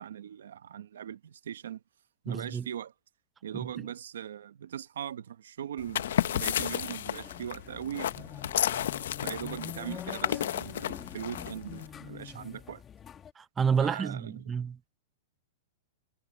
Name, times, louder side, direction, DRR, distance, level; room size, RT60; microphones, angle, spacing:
voice 1, 0.0-1.8 2.2-2.9 3.4-8.5 9.2-12.8 13.8-14.4, right 10 dB, 85° right, 0.9 m, -40 dB
voice 2, 2.3-2.7 3.5-3.7 13.4-14.8, right 6 dB, 15° right, 0.8 m, -29 dB
sound 1, 5.8-11.9, left 11 dB, 75° left, 0.8 m, -32 dB
sound 2, 6.0-13.3, left 9 dB, 20° left, 1.6 m, -46 dB
hypercardioid pair, 145°, 0 cm